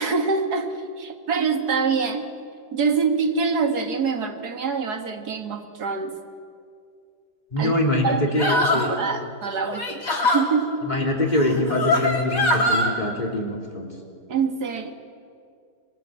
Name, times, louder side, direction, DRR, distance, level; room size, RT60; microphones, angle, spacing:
voice 1, 0.0-2.3 2.7-6.2 7.6-10.8 14.3-14.9, right 5 dB, 70° right, 6 dB, 2.2 m, -25 dB
voice 2, 7.5-8.9 10.9-13.9, left 1 dB, 25° left, 0 dB, 3.3 m, -24 dB
sound 1, 8.4-8.9 9.7-10.5 11.4-12.9, left 2 dB, 55° left, 3.1 m, -22 dB
24.5 x 23.5 x 7.5 m, 2.3 s
omnidirectional pair, 1.7 m